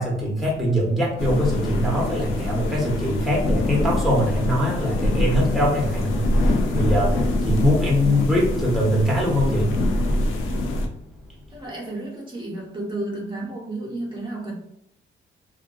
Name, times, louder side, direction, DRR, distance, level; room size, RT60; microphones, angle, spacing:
voice 1, 0.0-9.7, equal, ahead, -5 dB, 0.9 m, -23 dB
sound 1, 1.2-10.9, left 1 dB, 80° left, 0.5 m, -24 dB
voice 2, 8.0-8.4 11.5-14.5, right 2 dB, 25° right, -3 dB, 0.8 m, -32 dB
2.5 x 2.3 x 2.5 m, 0.77 s
cardioid pair, 90°, 20 cm